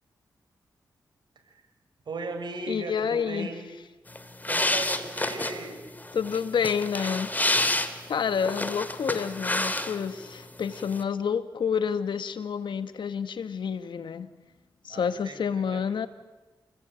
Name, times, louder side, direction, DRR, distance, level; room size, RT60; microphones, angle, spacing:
voice 1, 2.0-3.7 4.4-5.8 14.9-15.8, right 3 dB, 70° right, 6 dB, 6.5 m, -37 dB
voice 2, 2.7-3.5 6.1-7.3 8.1-14.3 14.8-16.1, left 7 dB, 75° left, 11 dB, 1.7 m, -29 dB
sound 1, 4.1-10.3 10.5-11.0, left 2 dB, 20° left, 2.9 m, -29 dB
29.5 x 21.0 x 9.1 m, 1.2 s
cardioid pair, 55°, 8 cm